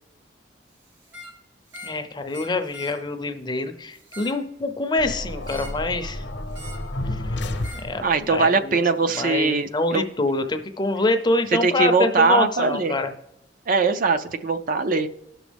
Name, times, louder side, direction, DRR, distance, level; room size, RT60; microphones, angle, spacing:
sound 1, 1.0-1.4 1.7-2.0 2.3-3.0 3.9-4.4 5.4-5.8 6.5-6.9 7.6-7.9 9.1-9.3, equal, 85° right, 2.1 m, -42 dB
voice 1, 1.8-6.2 7.1-7.2 7.8-8.8 9.1-13.1, left 2 dB, 25° left, 7 dB, 0.6 m, -25 dB
sound 2, 5.0-8.3, left 1 dB, 70° left, 0.8 m, -31 dB
voice 2, 8.0-10.0 11.6-12.9 13.7-15.1, right 4 dB, 50° right, 9 dB, 0.5 m, -21 dB
17.0 x 6.2 x 3.4 m, 0.80 s
head